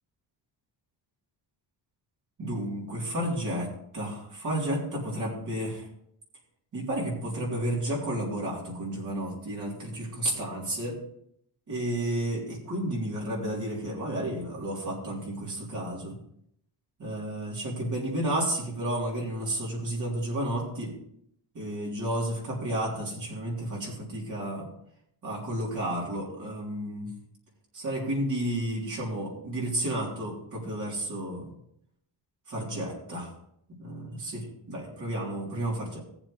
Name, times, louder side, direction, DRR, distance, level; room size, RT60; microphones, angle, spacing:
voice 1, 2.4-3.7 3.9-5.9 6.7-11.0 11.7-16.1 17.0-20.9 21.5-24.7 25.2-27.1 27.7-31.5 32.5-33.3 33.8-36.0, right 1 dB, 45° right, -4 dB, 3.5 m, -32 dB
17.5 x 7.3 x 3.3 m, 0.73 s
cardioid pair, 155°, 42 cm